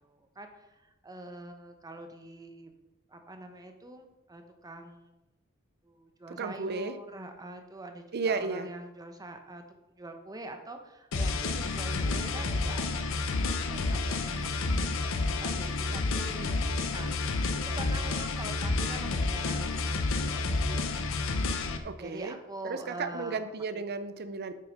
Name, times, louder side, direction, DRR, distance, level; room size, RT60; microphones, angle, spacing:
voice 1, 0.0-2.7 3.1-5.1 5.8-9.6 10.0-17.1 17.5-20.8 22.0-23.4 23.7-23.8, right 2 dB, 15° right, 5 dB, 0.8 m, -45 dB
voice 2, 6.3-7.0 8.1-8.7 21.8-22.4 22.6-24.5, right 4 dB, 50° right, 11 dB, 0.6 m, -33 dB
sound 1, 11.1-21.8, left 3 dB, 65° left, 0.8 m, -30 dB
7.7 x 6.1 x 5.2 m, 0.98 s
head